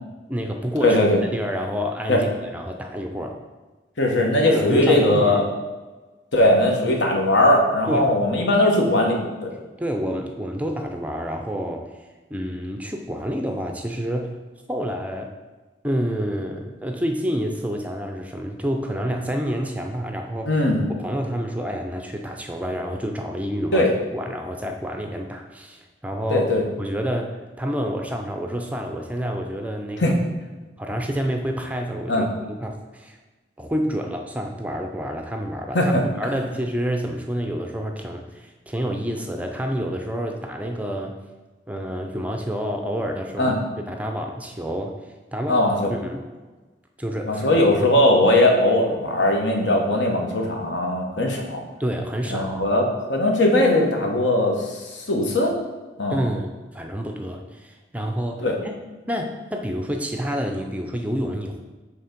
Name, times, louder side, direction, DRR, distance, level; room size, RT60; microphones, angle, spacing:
voice 1, 0.3-1.0 1.3-3.4 4.5-5.5 7.9-8.2 9.8-14.3 14.7-15.3 15.8-20.6 20.9-26.5 26.8-30.2 30.8-33.2 33.6-35.9 36.2-41.2 41.7-45.6 45.9-46.2 47.0-47.5 47.8-48.0 51.8-52.7 56.1-58.8 59.1-61.6, equal, 10° right, 3 dB, 0.4 m, -28 dB
voice 2, 0.8-1.2 2.1-2.2 4.0-5.4 6.3-9.5 20.4-20.8 23.7-23.9 26.3-26.6 30.0-30.1 32.1-32.3 35.7-36.0 43.4-43.5 45.5-45.9 47.2-51.6 52.3-54.8 55.1-55.5 56.0-56.2 58.4-58.6, left 1 dB, 75° left, 1 dB, 1.1 m, -19 dB
6.9 x 3.4 x 5.1 m, 1.2 s
head